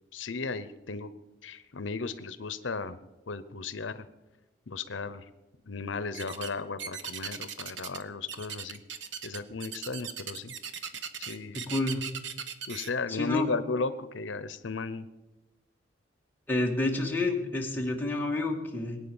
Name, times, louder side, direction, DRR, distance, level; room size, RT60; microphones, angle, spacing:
voice 1, 0.1-1.1 1.4-3.0 3.3-4.1 4.7-5.3 5.6-8.8 9.2-10.5 11.2-11.7 12.7-15.1, left 4 dB, 80° left, 13 dB, 0.8 m, -35 dB
sound 1, 6.1-6.5 6.8-8.0 8.3-12.9, right 7 dB, 70° right, 1.2 m, -38 dB
voice 2, 11.5-12.0 13.1-13.5 16.5-19.0, left 2 dB, 10° left, -1 dB, 2.2 m, -29 dB
21.5 x 9.2 x 7.1 m, 1.1 s
head